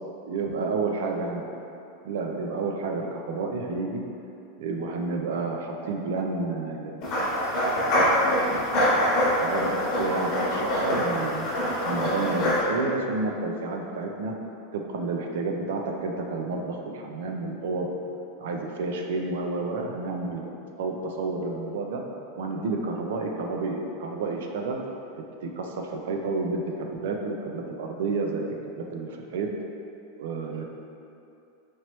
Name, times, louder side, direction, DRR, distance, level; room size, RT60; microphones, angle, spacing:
voice 1, 0.3-1.5 2.0-4.0 4.6-7.6 9.4-11.5 11.9-14.3 14.7-17.9 18.4-22.0 22.4-24.8 25.2-29.5 30.2-30.7, right 3 dB, 65° right, 2 dB, 0.4 m, -30 dB
sound 1, 7.0-12.6, equal, 30° left, 0.9 m, -24 dB
4.4 x 3.0 x 2.9 m, 2.8 s
supercardioid pair, 180°, 0 cm